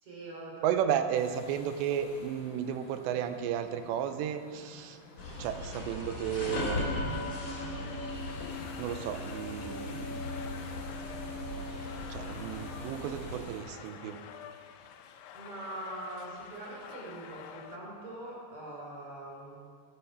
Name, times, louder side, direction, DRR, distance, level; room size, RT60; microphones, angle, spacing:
voice 1, 0.0-1.0 15.3-19.6, right 1 dB, 35° right, -2 dB, 3.5 m, -43 dB
voice 2, 0.6-5.0 5.4-8.1 8.8-10.2 12.1-14.2, right 9 dB, 85° right, 9 dB, 2.9 m, -34 dB
sound 1, 1.1-13.6, left 2 dB, 55° left, 2.2 m, -53 dB
sound 2, 5.2-13.4, left 2 dB, 30° left, 3.0 m, -37 dB
sound 3, 6.8-17.8, left 8 dB, 90° left, 2.9 m, -49 dB
12.0 x 11.5 x 5.9 m, 2.1 s
omnidirectional pair, 5.1 m